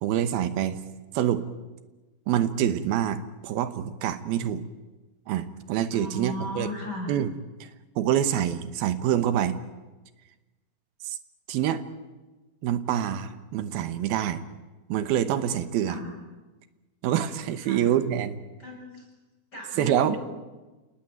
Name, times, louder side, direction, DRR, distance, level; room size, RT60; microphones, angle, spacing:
voice 1, 0.0-0.8 1.1-1.4 2.3-4.6 5.3-6.7 7.1-7.3 7.6-7.7 8.0-9.6 11.0-11.2 11.5-11.8 12.6-14.4 14.9-16.0 17.0-18.4 19.8-20.2, right 10 dB, 70° right, 11 dB, 2.7 m, -26 dB
voice 2, 5.9-7.1 15.8-16.1 17.6-17.9 18.6-19.1 19.5-20.2, left 1 dB, 20° left, -1 dB, 8.4 m, -36 dB
29.5 x 19.0 x 9.3 m, 1.2 s
omnidirectional pair, 5.0 m